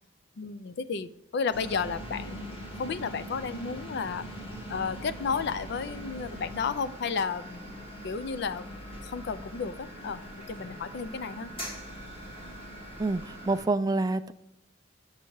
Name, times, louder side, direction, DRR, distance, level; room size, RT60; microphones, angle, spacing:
voice 1, 0.4-4.3 4.7-7.7 8.0-10.2 10.5-11.5, left 5 dB, 60° left, 14 dB, 0.4 m, -33 dB
sound 1, 1.5-13.6, equal, 30° left, 1.8 m, -42 dB
voice 2, 13.0-14.3, right 3 dB, 20° right, 10 dB, 0.3 m, -27 dB
6.7 x 6.4 x 3.1 m, 0.84 s
head